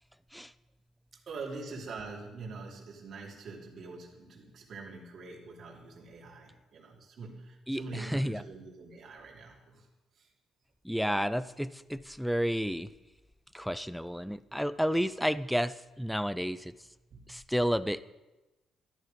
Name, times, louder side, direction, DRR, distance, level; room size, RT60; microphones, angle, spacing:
voice 1, 1.3-9.9 10.2-10.3 17.1-17.4, right 3 dB, 40° right, -2 dB, 3.3 m, -44 dB
voice 2, 7.7-8.4 10.8-12.9 13.5-16.7 17.3-18.0, equal, ahead, 15 dB, 0.4 m, -31 dB
14.5 x 12.5 x 5.2 m, 1.1 s
cardioid pair, 165°, 0 cm